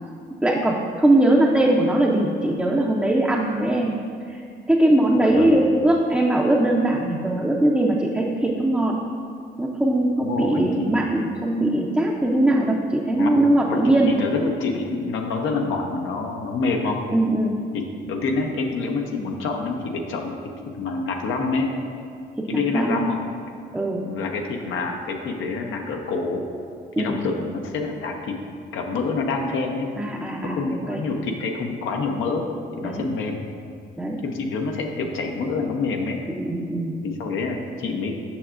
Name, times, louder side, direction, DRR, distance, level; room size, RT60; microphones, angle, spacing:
voice 1, 0.4-3.9 4.3-4.4 4.7-8.9 9.6-14.1 17.1-17.5 22.4-23.0 23.7-24.0 27.0-27.2 30.0-31.0 32.8-33.1 34.0-34.2 36.3-37.0, right 1 dB, 5° right, -3 dB, 0.5 m, -21 dB
voice 2, 5.2-5.6 10.2-10.9 13.2-13.4 13.7-17.0 17.7-20.4 20.7-21.7 22.5-23.2 24.0-26.4 27.0-28.3 28.7-29.9 30.4-32.5 32.8-33.4 34.2-36.2 37.0-38.1, left 4 dB, 80° left, 2 dB, 0.7 m, -27 dB
7.0 x 5.7 x 2.5 m, 2.3 s
cardioid pair, 90°, 20 cm